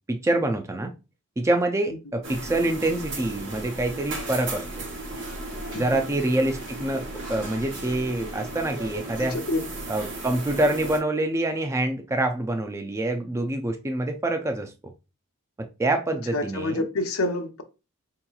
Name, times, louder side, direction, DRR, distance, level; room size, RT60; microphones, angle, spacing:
voice 1, 0.1-0.9 1.4-4.6 5.7-9.4 9.9-14.7 15.6-16.8, right 1 dB, 15° right, 0.3 m, -26 dB
sound 1, 2.2-11.0, right 2 dB, 60° right, 1.0 m, -35 dB
voice 2, 9.2-9.6 16.3-17.6, left 2 dB, 80° left, 0.6 m, -28 dB
4.6 x 2.8 x 2.3 m
head